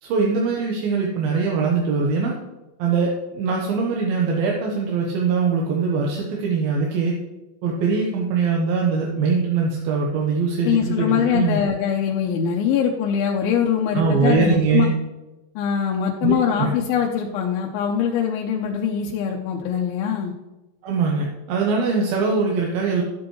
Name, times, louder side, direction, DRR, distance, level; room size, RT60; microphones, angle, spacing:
voice 1, 0.0-2.4 2.8-7.1 7.6-11.6 13.9-14.9 16.2-16.7 20.8-23.0, right 4 dB, 85° right, -1 dB, 2.9 m, -22 dB
voice 2, 10.6-14.9 15.6-20.3, left 8 dB, 85° left, 0 dB, 2.6 m, -22 dB
13.0 x 8.5 x 3.1 m, 1.1 s
omnidirectional pair, 4.2 m